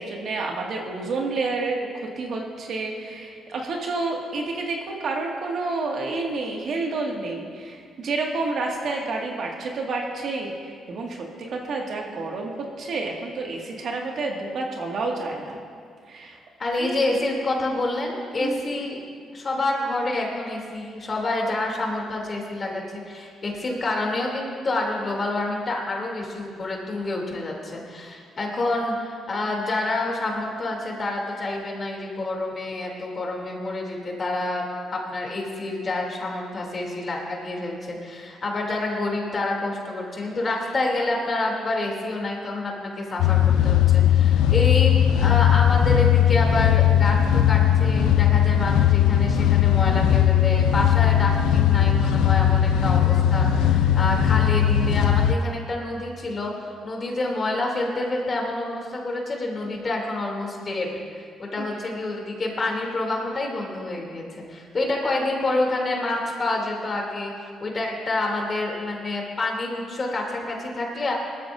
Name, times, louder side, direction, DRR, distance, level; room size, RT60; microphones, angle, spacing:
voice 1, 0.0-15.6 16.1-16.4 16.8-17.0 18.4-18.6 61.6-61.7, right 3 dB, 60° right, 0 dB, 1.9 m, -29 dB
voice 2, 16.6-19.0 19.3-34.6 34.9-60.9 61.4-67.3 67.6-71.1, left 2 dB, 40° left, -1 dB, 2.8 m, -28 dB
sound 1, 43.2-55.3, left 10 dB, 90° left, 0.4 m, -18 dB
19.0 x 13.5 x 2.6 m, 2.2 s
cardioid pair, 90°, 0 cm